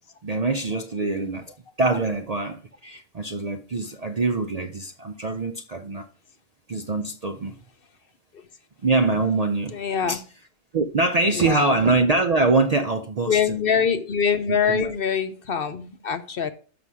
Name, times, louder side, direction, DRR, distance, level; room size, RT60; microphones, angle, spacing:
voice 1, 0.2-6.1 6.7-7.6 8.8-9.8 10.1-10.2 10.7-13.6 14.5-14.9, right 3 dB, 45° right, 0.5 m, -24 dB
voice 2, 9.7-10.2 11.2-11.8 13.3-16.5, left 7 dB, 55° left, 0.9 m, -24 dB
6.8 x 5.5 x 6.1 m
omnidirectional pair, 1.2 m